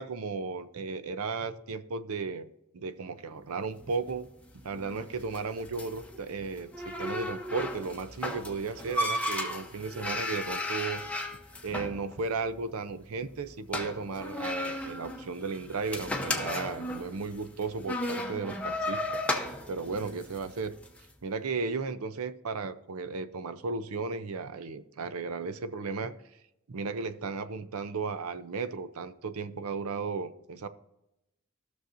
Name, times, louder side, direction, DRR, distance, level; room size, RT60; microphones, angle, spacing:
voice 1, 0.0-4.3 4.6-11.0 11.6-19.2 19.7-20.8 21.2-26.1 26.7-30.7, right 4 dB, 85° right, 13 dB, 0.6 m, -35 dB
sound 1, 3.8-21.0, left 1 dB, 5° left, 0.7 m, -35 dB
15.5 x 6.4 x 2.6 m, 0.88 s
head